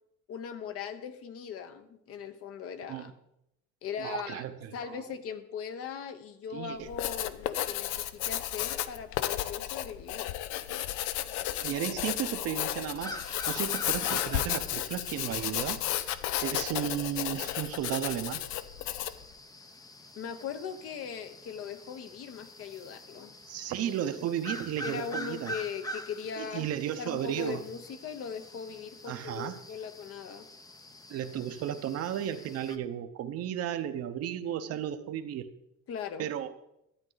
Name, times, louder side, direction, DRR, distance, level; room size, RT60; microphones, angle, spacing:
voice 1, 0.3-3.1 3.8-4.4 4.7-10.3 20.2-23.3 24.8-26.7 27.0-30.5 35.9-36.3, left 7 dB, 50° left, 9 dB, 1.0 m, -39 dB
voice 2, 4.0-5.0 6.5-6.9 11.5-15.8 16.4-18.4 23.5-25.5 26.4-27.6 29.1-29.6 31.1-35.5 36.2-36.5, right 10 dB, 55° right, 9 dB, 0.9 m, -34 dB
Writing, 6.8-19.3, left 13 dB, 85° left, 0.6 m, -33 dB
sound 1, 13.0-32.8, left 1 dB, 15° left, 0.6 m, -46 dB
12.5 x 8.8 x 4.0 m, 0.82 s
cardioid pair, 140°, 29 cm